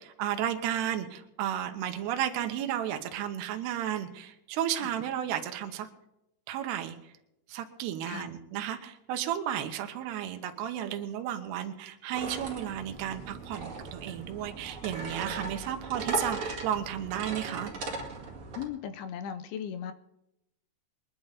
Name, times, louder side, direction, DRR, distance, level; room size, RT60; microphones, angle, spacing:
voice 1, 0.0-5.9 6.5-7.0 7.5-17.7, right 10 dB, 80° right, 6 dB, 3.1 m, -33 dB
sound 1, 12.1-18.6, right 3 dB, 40° right, 2.2 m, -38 dB
voice 2, 18.5-19.9, left 8 dB, 75° left, 11 dB, 2.4 m, -37 dB
22.5 x 11.0 x 4.1 m, 0.84 s
omnidirectional pair, 4.9 m